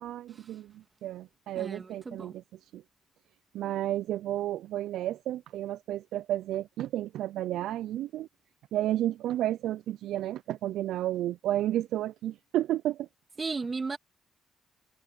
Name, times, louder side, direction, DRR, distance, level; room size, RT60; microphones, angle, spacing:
voice 1, 0.0-2.8 3.5-8.3 8.7-13.1, right 13 dB, 70° right, 0.5 m, -32 dB
voice 2, 1.5-2.3 13.4-14.0, right 4 dB, 35° right, 2.4 m, -34 dB
hypercardioid pair, 45°, 0 cm